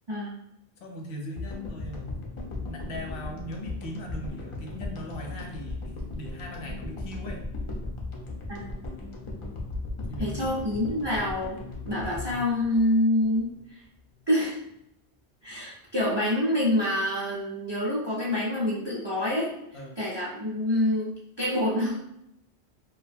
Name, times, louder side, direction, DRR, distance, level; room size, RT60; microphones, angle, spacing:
voice 1, 0.8-2.1 2.6-7.4 10.1-10.5 12.1-12.4 19.7-20.0, equal, 75° left, 1 dB, 0.8 m, -39 dB
sound 1, 1.4-13.7, left 2 dB, 55° left, 0.3 m, -37 dB
voice 2, 10.2-11.6 11.8-13.5 14.3-14.6 15.4-19.5 20.0-21.1 21.4-22.0, left 1 dB, 40° right, -6 dB, 0.4 m, -26 dB
2.4 x 2.2 x 2.5 m, 0.81 s
omnidirectional pair, 1.1 m